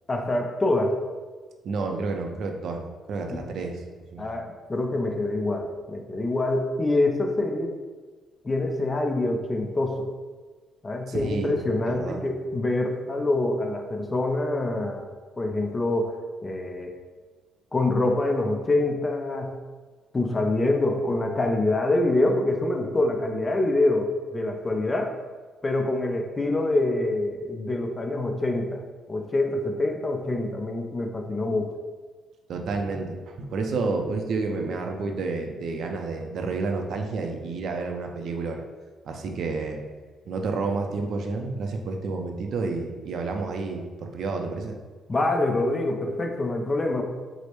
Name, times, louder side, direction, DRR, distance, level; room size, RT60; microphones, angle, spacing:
voice 1, 0.1-1.0 3.3-3.4 4.2-7.7 8.4-10.1 10.8-15.1 15.4-16.2 16.4-16.9 17.7-19.6 20.1-25.1 25.6-28.8 29.1-31.8 45.1-47.0, left 2 dB, 25° left, 3 dB, 0.5 m, -25 dB
voice 2, 1.6-3.8 4.1-4.3 11.1-11.6 11.9-12.2 32.5-38.6 39.0-39.8 40.2-44.8, right 3 dB, 65° right, 4 dB, 0.5 m, -30 dB
4.6 x 2.0 x 3.0 m, 1.4 s
cardioid pair, 90°, 0 cm